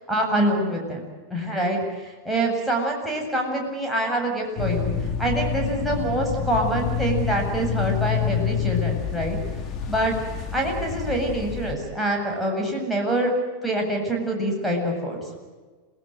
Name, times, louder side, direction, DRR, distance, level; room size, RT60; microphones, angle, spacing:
voice 1, 0.1-1.0 1.3-4.9 5.2-9.4 9.9-10.1 10.5-13.3 13.6-15.2, right 1 dB, ahead, 0 dB, 7.9 m, -25 dB
sound 1, 4.6-11.7, left 7 dB, 30° left, 3.9 m, -27 dB
27.5 x 19.5 x 8.0 m, 1.4 s
figure-of-eight pair, 90°, 0 cm